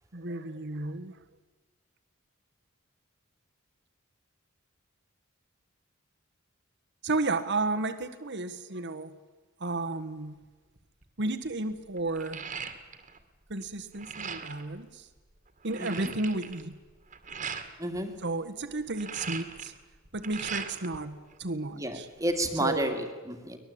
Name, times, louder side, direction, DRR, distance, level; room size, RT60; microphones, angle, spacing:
voice 1, 0.1-1.1 7.0-9.1 9.6-10.4 11.2-12.5 13.5-15.1 15.6-16.8 18.2-19.7 20.1-22.1 22.6-22.9, right 2 dB, 55° right, 8 dB, 1.5 m, -32 dB
sound 1, 10.7-11.0 11.4-13.2 13.5-14.7 15.2-15.3 15.5-17.7 18.7-21.0 21.3-22.2, right 6 dB, 35° right, 2.2 m, -40 dB
voice 2, 15.8-16.1 17.8-18.1 21.8-23.6, right 1 dB, 15° right, 5 dB, 2.3 m, -31 dB
24.0 x 20.0 x 8.7 m, 1.3 s
head